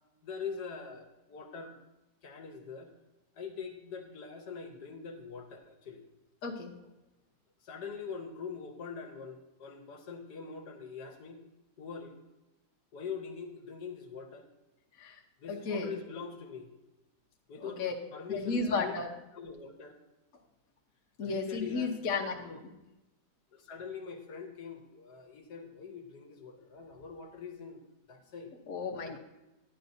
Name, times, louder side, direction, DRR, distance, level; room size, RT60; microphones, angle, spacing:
voice 1, 0.2-1.8 2.2-2.9 3.3-6.0 7.6-11.4 11.8-12.2 12.9-14.5 15.4-16.7 17.5-18.9 19.3-20.0 21.2-21.9 22.3-22.6 23.5-27.8 28.1-28.5 29.1-29.2, left 5 dB, 80° left, 3 dB, 1.6 m, -43 dB
voice 2, 6.4-6.7 15.0-15.2 15.5-15.9 17.6-17.9 18.3-19.1 21.2-22.4 22.6-22.7 28.7-29.2, left 4 dB, 60° left, -1 dB, 1.4 m, -33 dB
12.0 x 10.0 x 2.7 m, 1.0 s
omnidirectional pair, 1.7 m